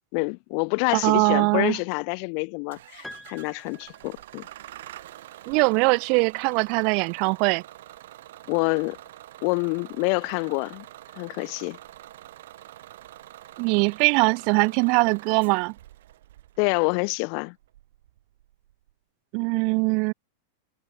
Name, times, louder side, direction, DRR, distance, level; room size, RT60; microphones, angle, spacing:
voice 1, 0.1-4.5 8.5-9.0 9.4-10.8 11.1-11.8 16.6-17.6, left 40 dB or more, 40° left, 0.7 m, -27 dB
voice 2, 0.9-1.8 5.5-7.6 13.6-15.7 19.3-20.1, right 35 dB, 40° right, 0.7 m, -22 dB
Bus / Engine starting, 2.7-18.9, right 14 dB, 65° right, 2.6 m, -46 dB
Piano, 3.0-4.7, left 1 dB, ahead, 2.1 m, -46 dB
supercardioid pair, 160°, 0 cm